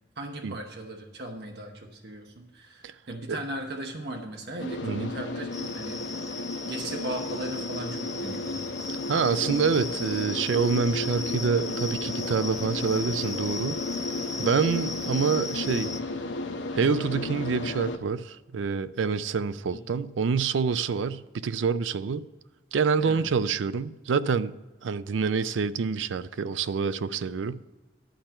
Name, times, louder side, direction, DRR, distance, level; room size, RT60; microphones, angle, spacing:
voice 1, 0.2-8.6 9.5-9.7 19.7-19.8 23.0-23.3, right 1 dB, 60° right, 1.0 m, -38 dB
sound 1, 4.6-18.0, left 2 dB, 80° left, 0.7 m, -33 dB
sound 2, 5.5-16.0, left 4 dB, 20° left, 0.5 m, -38 dB
voice 2, 9.1-13.8 14.4-16.0 16.7-22.3 22.7-24.5 24.8-27.7, right 5 dB, 90° right, 0.4 m, -27 dB
11.5 x 4.4 x 7.8 m
head